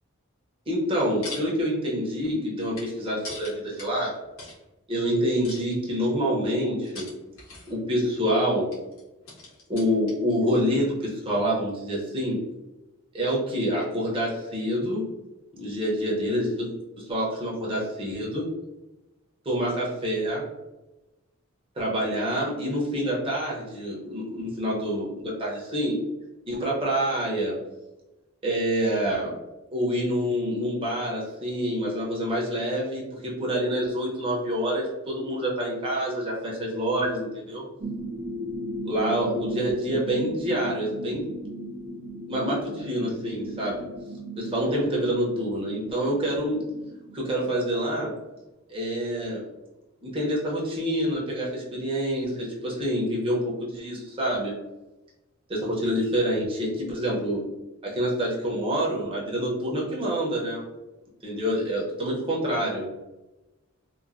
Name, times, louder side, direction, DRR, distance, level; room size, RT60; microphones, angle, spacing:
voice 1, 0.7-4.1 4.9-7.1 7.7-8.7 9.7-12.4 13.1-15.0 15.5-16.7 17.0-18.5 19.4-20.5 21.8-26.0 26.5-27.5 28.4-29.3 29.7-37.7 38.8-41.3 42.3-43.9 44.4-46.7 47.1-48.1 48.7-49.4 50.0-54.6 55.5-57.4 57.8-60.6 61.2-62.9, equal, 25° right, -5 dB, 0.7 m, -27 dB
sound 1, 0.8-1.5 1.9-4.6 5.4-6.2 6.8-7.9 8.7-10.3 10.6-10.7, left 3 dB, 75° left, 0.9 m, -42 dB
sound 2, 37.8-48.3, right 1 dB, 40° right, 0.3 m, -37 dB
3.0 x 2.1 x 2.4 m, 1.0 s
head